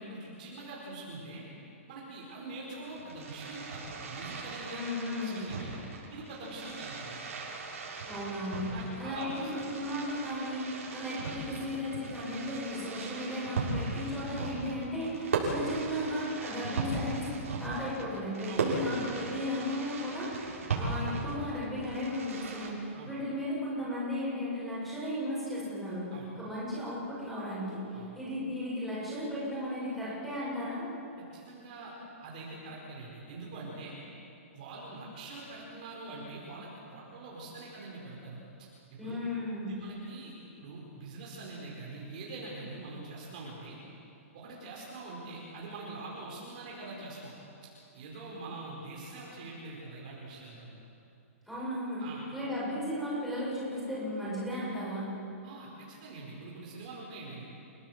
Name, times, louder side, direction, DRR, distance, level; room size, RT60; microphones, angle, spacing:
voice 1, 0.0-1.5 1.9-5.7 6.1-7.2 8.6-9.5 18.5-18.7 22.9-23.1 26.1-26.3 27.9-28.1 31.2-31.9 32.2-34.0 34.5-38.4 38.9-39.2 39.7-40.3 40.6-43.8 44.3-47.3 47.6-50.7 52.0-52.2 55.4-57.4, right 2 dB, 35° right, -4 dB, 4.9 m, -44 dB
Fireworks, 2.9-22.7, right 3 dB, 70° right, 7.4 m, -38 dB
voice 2, 4.7-5.4 8.1-8.7 9.0-17.3 17.6-26.1 26.4-30.9 39.0-39.8 51.5-52.0 52.3-55.1, left 1 dB, ahead, -9 dB, 7.6 m, -35 dB
30.0 x 18.0 x 8.1 m, 2.7 s
hypercardioid pair, 180°, 8 cm